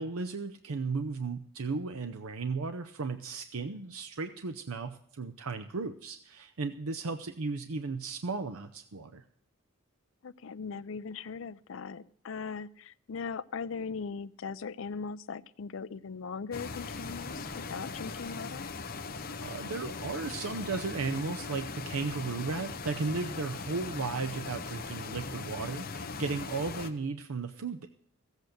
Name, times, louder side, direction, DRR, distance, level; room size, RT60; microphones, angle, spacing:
voice 1, 0.0-9.2 19.4-27.9, right 4 dB, 85° right, 7 dB, 0.7 m, -35 dB
voice 2, 10.2-18.7, left 5 dB, 65° left, 15 dB, 0.5 m, -39 dB
sound 1, 16.5-26.9, left 4 dB, 45° left, 0.9 m, -40 dB
15.0 x 8.1 x 6.6 m, 0.66 s
head